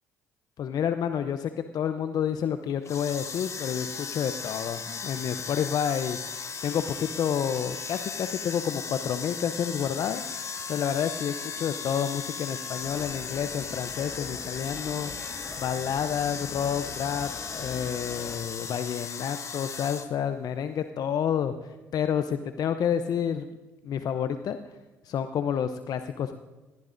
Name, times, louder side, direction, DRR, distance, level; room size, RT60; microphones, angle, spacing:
voice 1, 0.6-23.5 23.8-24.8 25.0-26.4, left 8 dB, 55° left, 9 dB, 0.7 m, -30 dB
sound 1, 2.8-20.1, left 5 dB, 40° left, 1.2 m, -37 dB
sound 2, 12.8-18.4, left 2 dB, 25° left, 5.5 m, -44 dB
20.5 x 15.5 x 2.6 m, 1.3 s
hypercardioid pair, 55°, 8 cm